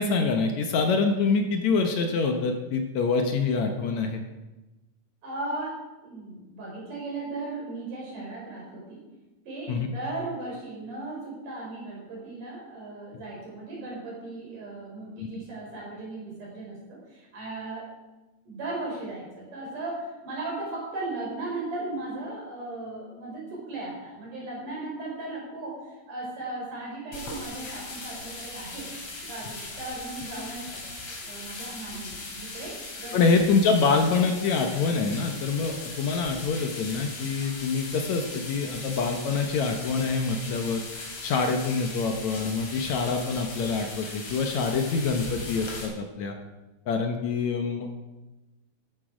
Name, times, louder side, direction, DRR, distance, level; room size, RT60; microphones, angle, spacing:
voice 1, 0.0-4.2 9.7-9.9 15.2-15.3 33.1-40.8 41.2-46.4 46.9-47.9, left 4 dB, 70° left, 4 dB, 1.8 m, -25 dB
voice 2, 5.2-9.0 9.5-17.9 18.5-28.9 29.2-30.8 31.2-33.2, right 2 dB, 55° right, -3 dB, 5.7 m, -37 dB
sound 1, 27.1-45.9, left 2 dB, 40° left, 3.4 m, -39 dB
13.5 x 11.5 x 4.9 m, 1.1 s
omnidirectional pair, 4.4 m